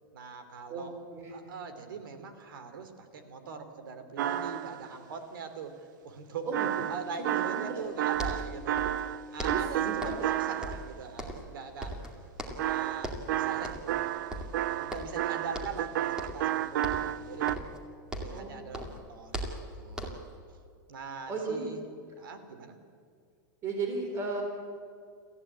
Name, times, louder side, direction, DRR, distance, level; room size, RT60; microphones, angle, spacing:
voice 1, 0.1-1.0 1.3-6.5 6.9-8.8 9.3-12.1 12.4-14.1 14.7-17.8 18.1-19.5 19.8-20.3 20.9-21.8 22.2-22.8, right 5 dB, 90° right, 9 dB, 3.0 m, -42 dB
voice 2, 0.7-1.3 6.4-6.7 7.2-7.8 9.4-10.2 18.3-18.7 21.3-21.7 23.6-24.4, right 3 dB, 25° right, 2 dB, 3.6 m, -35 dB
sound 1, 4.2-4.9 6.5-10.9 12.6-17.6, right 12 dB, 65° right, 0.8 m, -31 dB
sound 2, 7.8-7.9 8.1-9.1 9.4-10.3 10.6-11.5 11.8-12.7 13.0-13.3 13.6-14.0 14.3-15.2 15.5-15.9 16.2-16.5 16.8-18.5 18.7-20.3, right 1 dB, 5° right, 2.4 m, -39 dB
26.5 x 15.0 x 8.8 m, 2.2 s
supercardioid pair, 165°, 11 cm